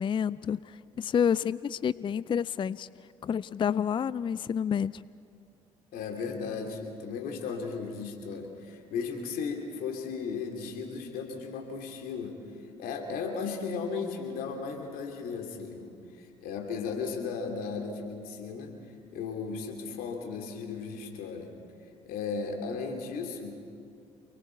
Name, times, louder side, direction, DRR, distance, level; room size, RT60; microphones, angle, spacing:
voice 1, 0.0-2.9 3.2-5.0, left 8 dB, 30° left, 18 dB, 0.4 m, -29 dB
voice 2, 5.9-12.4 12.8-18.7 19.1-21.5 22.1-23.5, left 5 dB, 65° left, 3 dB, 3.0 m, -35 dB
28.5 x 21.0 x 4.6 m, 2.3 s
hypercardioid pair, 55°, 16 cm